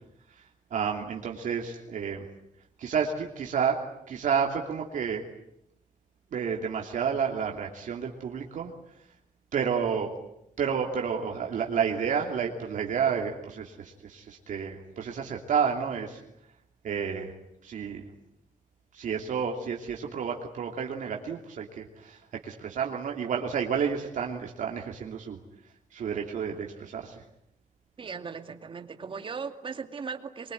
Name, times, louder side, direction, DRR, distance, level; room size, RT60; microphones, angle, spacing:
voice 1, 0.7-2.3 2.8-5.2 6.3-8.7 9.5-10.1 10.6-16.2 16.8-17.3 17.6-18.1 18.9-25.4 25.9-27.2, right 7 dB, 65° right, 1 dB, 2.9 m, -30 dB
voice 2, 28.0-30.5, right 5 dB, 40° right, 7 dB, 2.3 m, -38 dB
24.0 x 23.5 x 9.4 m, 0.79 s
cardioid pair, 125°, 14 cm